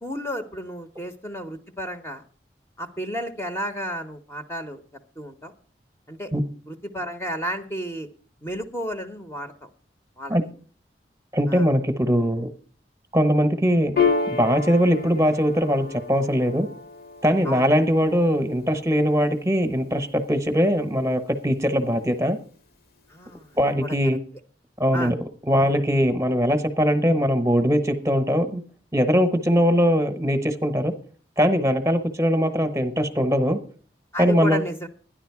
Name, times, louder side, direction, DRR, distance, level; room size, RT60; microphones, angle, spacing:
voice 1, 0.0-2.2 2.8-4.8 5.2-5.5 6.1-6.3 6.7-8.1 8.4-9.7 10.2-10.5 11.5-11.7 17.4-17.7 23.1-23.5 23.8-24.0 24.9-25.1 34.1-34.9, equal, 15° left, 6 dB, 0.8 m, -32 dB
voice 2, 11.3-12.5 13.1-14.0 14.3-16.7 17.2-22.4 23.6-24.2 24.8-25.2 25.5-28.6 28.9-30.9 31.4-33.6 34.2-34.6, equal, 15° right, 9 dB, 0.9 m, -21 dB
Piano, 14.0-20.9, left 5 dB, 55° left, 1.0 m, -31 dB
12.5 x 10.5 x 4.7 m, 0.41 s
head